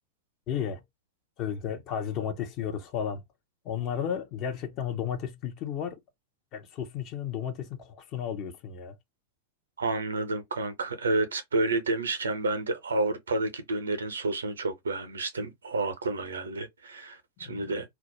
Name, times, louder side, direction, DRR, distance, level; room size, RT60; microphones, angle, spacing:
voice 1, 0.5-0.8 1.4-3.2 3.6-6.0 6.5-9.0 17.4-17.9, left 8 dB, 40° left, 0.6 m, -33 dB
voice 2, 9.8-17.9, right 2 dB, 70° right, 0.6 m, -30 dB
2.3 x 2.0 x 2.8 m
figure-of-eight pair, 90°, 0 cm